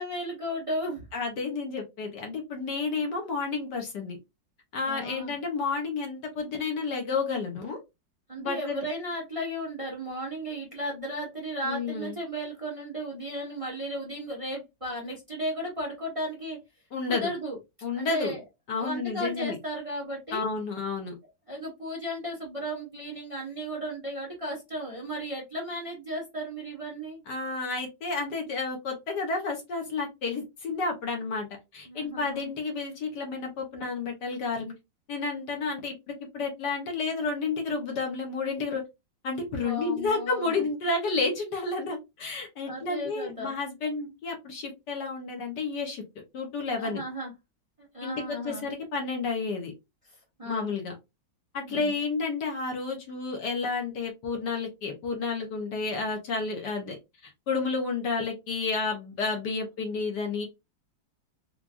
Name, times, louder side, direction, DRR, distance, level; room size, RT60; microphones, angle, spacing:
voice 1, 0.0-1.0 4.8-5.3 8.3-16.6 17.1-17.6 17.9-18.4 18.8-20.5 21.5-27.2 31.8-32.5 39.5-40.6 42.6-43.5 46.8-47.3 47.9-48.7 50.4-50.7 51.7-51.9, equal, 20° right, -3 dB, 1.2 m, -35 dB
voice 2, 1.1-4.2 4.7-7.8 8.4-8.8 11.6-12.2 16.9-17.3 17.8-18.4 18.7-19.6 20.3-21.1 27.3-31.5 31.7-34.7 35.1-38.8 39.2-46.0 46.3-47.0 48.0-49.7 50.5-50.9 51.5-57.0 57.2-60.5, left 4 dB, 60° left, 2 dB, 1.5 m, -31 dB
4.7 x 2.5 x 2.5 m, 0.22 s
omnidirectional pair, 2.1 m